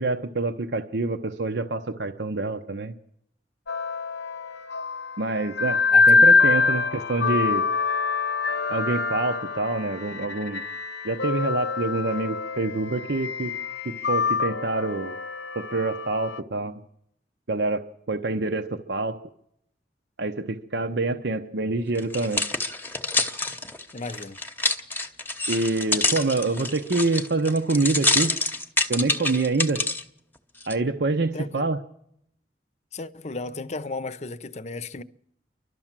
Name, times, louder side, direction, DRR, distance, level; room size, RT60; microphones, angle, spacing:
voice 1, 0.0-2.9 5.2-7.7 8.7-10.6 11.0-13.5 13.8-15.2 15.6-16.7 17.5-19.1 20.2-22.4 25.5-28.3 28.9-29.8 30.7-31.8, right 3 dB, 75° right, 0.8 m, -26 dB
sound 1, 3.7-16.4, left 4 dB, 90° left, 0.8 m, -24 dB
voice 2, 5.9-6.2 23.9-24.4 31.3-31.7 32.9-35.0, left 3 dB, 40° left, 0.7 m, -34 dB
sound 2, 22.0-30.0 30.6-30.7, left 2 dB, 10° left, 1.0 m, -26 dB
29.5 x 12.5 x 7.4 m
head